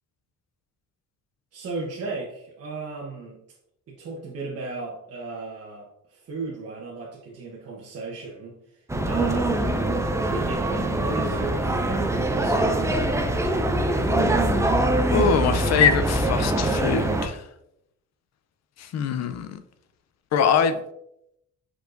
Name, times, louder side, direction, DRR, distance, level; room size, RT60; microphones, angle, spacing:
voice 1, 1.5-3.4 3.9-8.6 9.0-9.8 10.2-12.9, right 3 dB, 55° right, -3 dB, 1.0 m, -35 dB
sound 1, 8.9-17.3, right 1 dB, 10° right, 0.5 m, -23 dB
voice 2, 15.1-17.5 18.8-19.6 20.3-20.8, left 6 dB, 60° left, 10 dB, 0.5 m, -23 dB
4.6 x 4.5 x 2.5 m, 0.78 s
cardioid pair, 90°, 30 cm